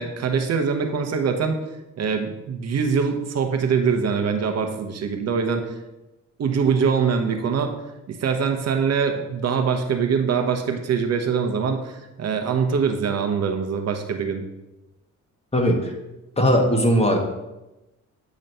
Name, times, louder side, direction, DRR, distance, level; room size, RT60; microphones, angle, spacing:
voice 1, 0.0-1.6 2.0-5.7 6.4-7.7 8.1-14.4, right 6 dB, 55° right, 5 dB, 0.9 m, -23 dB
voice 2, 15.5-15.9 16.4-17.2, equal, 20° left, 2 dB, 1.4 m, -19 dB
8.9 x 3.1 x 5.4 m, 1.0 s
cardioid pair, 90°, 30 cm